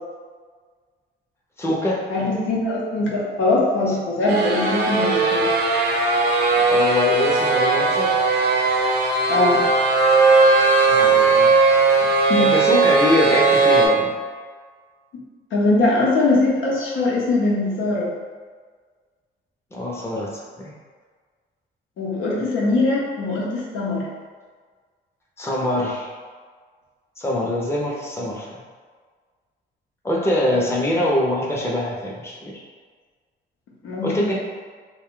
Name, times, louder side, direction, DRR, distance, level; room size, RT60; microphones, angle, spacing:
voice 1, 1.6-2.1 6.5-8.2 10.9-11.5 12.4-14.1 19.7-20.3 20.6-20.7 25.4-26.1 27.2-28.6 30.0-32.6 34.0-34.3, left 1 dB, 15° left, -3 dB, 0.6 m, -24 dB
voice 2, 2.1-5.5 9.3-9.6 12.3-12.5 15.5-18.1 22.0-24.1 30.5-30.6 33.8-34.3, left 2 dB, 80° left, -4 dB, 0.8 m, -21 dB
sound 1, 4.3-13.9, right 3 dB, 55° right, 0.6 m, -18 dB
2.5 x 2.2 x 3.6 m, 1.5 s
cardioid pair, 90°, 20 cm